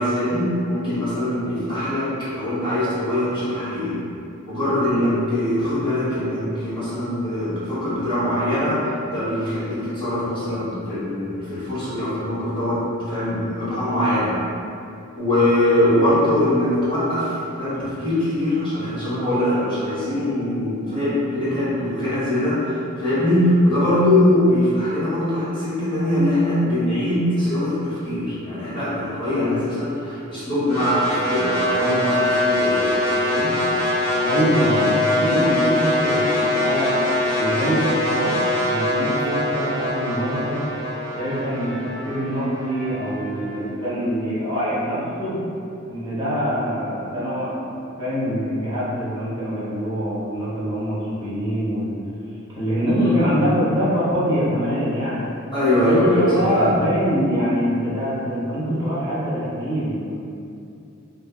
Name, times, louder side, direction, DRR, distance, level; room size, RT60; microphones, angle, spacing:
voice 1, 0.0-4.0 4.5-14.3 15.2-33.5 52.9-53.3 55.5-56.8, left 1 dB, 25° left, -12 dB, 1.0 m, -22 dB
sound 1, 30.7-42.9, left 1 dB, 85° left, 1.0 m, -23 dB
voice 2, 34.2-36.9 37.4-40.6 41.1-45.4 45.9-47.7 48.0-51.9 52.5-55.3 55.8-60.1, equal, 20° right, -10 dB, 0.6 m, -24 dB
Trumpet, 35.3-43.6, right 2 dB, 70° right, 0.6 m, -39 dB
2.6 x 2.3 x 2.3 m, 2.6 s
head